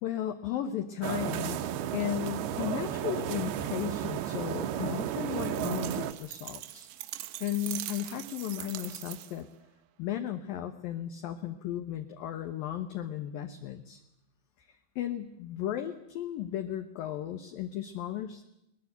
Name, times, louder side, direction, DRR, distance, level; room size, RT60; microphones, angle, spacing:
voice 1, 0.0-1.6 1.9-6.9 7.4-9.5 10.0-14.0 14.6-18.4, left 11 dB, 70° left, 7 dB, 2.3 m, -35 dB
sound 1, 1.0-6.1, right 11 dB, 70° right, 2.5 m, -33 dB
sound 2, 5.3-9.5, right 15 dB, 90° right, 3.4 m, -42 dB
21.5 x 20.0 x 8.2 m, 0.81 s
omnidirectional pair, 5.3 m